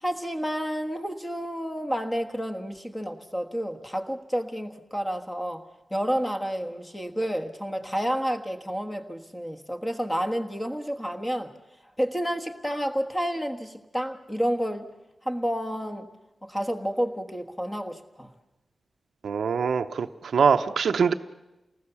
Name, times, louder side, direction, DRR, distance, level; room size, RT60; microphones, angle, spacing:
voice 1, 0.0-5.6 5.9-11.5 12.0-14.9 15.2-16.1 16.4-18.3, equal, 10° left, 5 dB, 1.4 m, -30 dB
voice 2, 19.2-20.1 20.3-21.1, right 6 dB, 85° right, 6 dB, 0.7 m, -23 dB
29.0 x 19.5 x 7.0 m, 1.0 s
wide cardioid pair, 175°, 0 cm